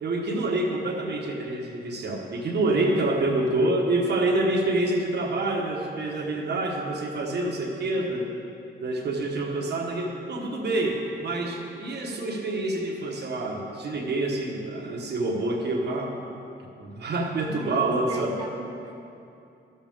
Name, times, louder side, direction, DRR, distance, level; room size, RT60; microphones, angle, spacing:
voice 1, 0.0-8.3 8.8-16.2 16.8-18.4, right 2 dB, 65° right, -1 dB, 1.3 m, -27 dB
voice 2, 2.7-3.1 8.0-8.1 17.5-18.9, right 2 dB, 20° right, -1 dB, 0.6 m, -38 dB
13.5 x 7.1 x 3.6 m, 2.7 s
wide cardioid pair, 175°, 19 cm